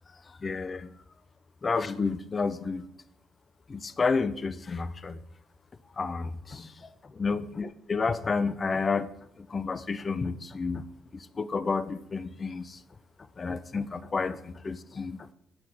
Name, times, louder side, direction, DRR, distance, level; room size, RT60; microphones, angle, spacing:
voice 1, 0.4-0.9 1.6-2.9 3.7-5.2 6.0-6.9 7.2-9.1 9.5-10.8 11.1-12.8 13.4-15.2, left 4 dB, 35° left, 14 dB, 0.5 m, -30 dB
6.3 x 4.5 x 5.8 m, 0.75 s
hypercardioid pair, 60°, 0 cm